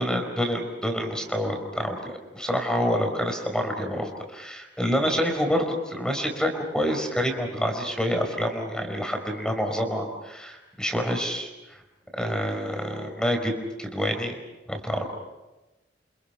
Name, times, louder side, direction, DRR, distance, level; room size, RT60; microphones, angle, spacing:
voice 1, 0.0-11.8 12.1-14.3 14.7-15.0, equal, 5° left, 4 dB, 4.7 m, -27 dB
29.0 x 27.0 x 5.8 m, 1.1 s
head